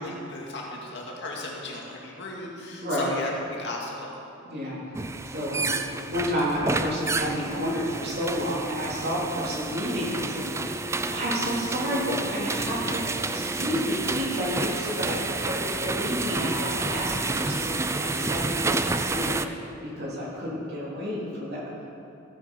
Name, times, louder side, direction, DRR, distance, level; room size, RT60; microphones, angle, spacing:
voice 1, 0.0-4.1, left 2 dB, 60° left, -2 dB, 2.3 m, -35 dB
voice 2, 4.4-13.0 13.3-21.6, equal, 55° right, -5 dB, 3.3 m, -31 dB
sound 1, 4.9-19.5, right 3 dB, 15° right, 0.4 m, -30 dB
sound 2, 10.0-18.5, equal, 10° left, 1.4 m, -39 dB
15.0 x 8.7 x 5.4 m, 2.9 s
head